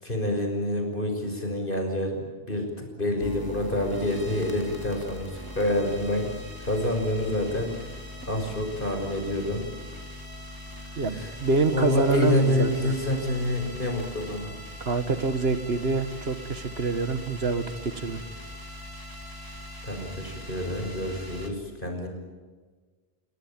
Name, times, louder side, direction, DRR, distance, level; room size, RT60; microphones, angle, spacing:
voice 1, 0.0-2.7 2.9-6.3 6.6-7.7 8.3-9.7 10.9-11.3 11.7-14.5 19.8-22.1, left 1 dB, 55° left, 3 dB, 6.2 m, -27 dB
sound 1, 3.2-21.5, left 1 dB, 20° right, 3.3 m, -41 dB
voice 2, 11.0-13.0 14.8-18.2, right 3 dB, 75° right, 10 dB, 1.9 m, -26 dB
29.5 x 19.5 x 8.9 m, 1.4 s
omnidirectional pair, 1.1 m